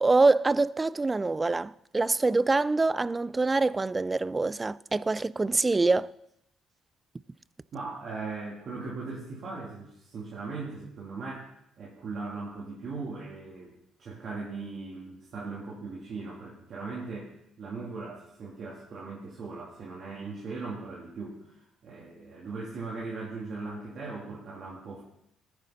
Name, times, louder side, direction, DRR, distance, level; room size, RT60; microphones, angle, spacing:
voice 1, 0.0-6.1, right 3 dB, 20° right, 0.3 m, -25 dB
voice 2, 7.7-11.5 11.8-13.7 14.0-25.0, right 3 dB, 50° right, 2.9 m, -39 dB
14.5 x 9.8 x 4.0 m
cardioid pair, 105°, 0 cm